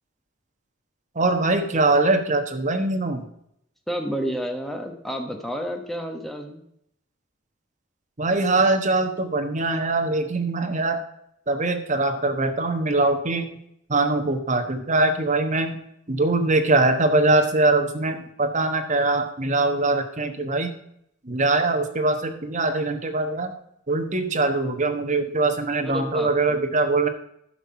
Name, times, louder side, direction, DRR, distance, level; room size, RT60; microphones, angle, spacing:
voice 1, 1.1-3.2 8.2-11.0 11.5-13.5 13.9-15.8 16.1-20.8 21.2-23.5 23.9-27.1, right 2 dB, 40° right, 6 dB, 1.2 m, -22 dB
voice 2, 3.9-6.6 25.8-26.6, equal, ahead, 3 dB, 1.3 m, -30 dB
11.5 x 6.0 x 5.7 m, 0.73 s
head